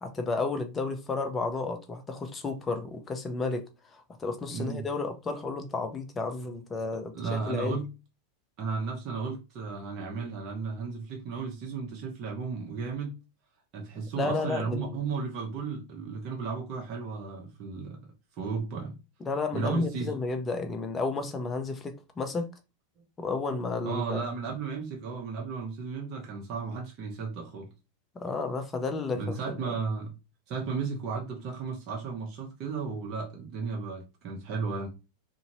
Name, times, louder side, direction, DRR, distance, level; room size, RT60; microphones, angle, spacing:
voice 1, 0.0-7.8 14.2-15.0 19.2-22.5 23.2-24.2 28.1-29.8, left 3 dB, 25° left, 0.7 m, -32 dB
voice 2, 4.5-4.8 7.1-7.9 8.6-13.1 13.7-18.0 18.4-19.0 19.5-20.1 23.0-23.1 23.8-27.7 29.1-30.1 30.5-34.9, right 5 dB, 45° right, 0.9 m, -34 dB
2.7 x 2.6 x 3.0 m
hypercardioid pair, 95°, 0 cm